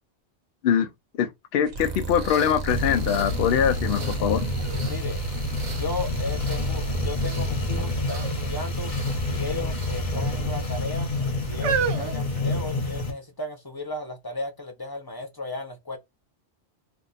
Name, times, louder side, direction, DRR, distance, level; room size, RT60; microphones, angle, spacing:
voice 1, 1.2-4.5, left 8 dB, 65° left, 0.7 m, -23 dB
sound 1, 1.6-11.6, right 3 dB, 45° right, 0.7 m, -36 dB
sound 2, 2.7-13.1, left 2 dB, 50° left, 1.1 m, -28 dB
sound 3, 4.1-4.2 4.6-6.1 6.7-7.2 8.0-8.4 8.7-8.8 9.7-10.4 11.1-13.1 13.9-14.0, right 7 dB, 80° right, 0.9 m, -32 dB
voice 2, 4.8-5.2 5.6-8.9 9.3-11.1 11.5-16.0, left 2 dB, 30° left, 0.5 m, -35 dB
2.8 x 2.2 x 3.8 m
omnidirectional pair, 1.1 m